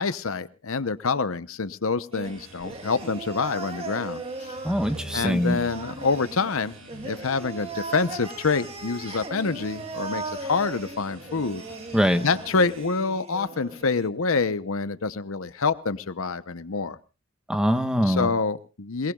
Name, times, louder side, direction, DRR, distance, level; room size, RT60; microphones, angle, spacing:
voice 1, 0.0-4.5 5.1-11.6 12.2-17.0 18.1-19.1, left 4 dB, 70° left, 13 dB, 0.8 m, -27 dB
sound 1, 2.1-14.1, right 3 dB, 25° right, 1.7 m, -38 dB
sound 2, 2.2-12.9, right 1 dB, 75° right, 5.0 m, -49 dB
voice 2, 4.6-5.6 11.9-12.2 17.5-18.3, equal, 5° right, 7 dB, 1.1 m, -23 dB
sound 3, 4.7-8.4, equal, 30° left, 4.7 m, -44 dB
27.5 x 19.0 x 2.4 m, 0.32 s
head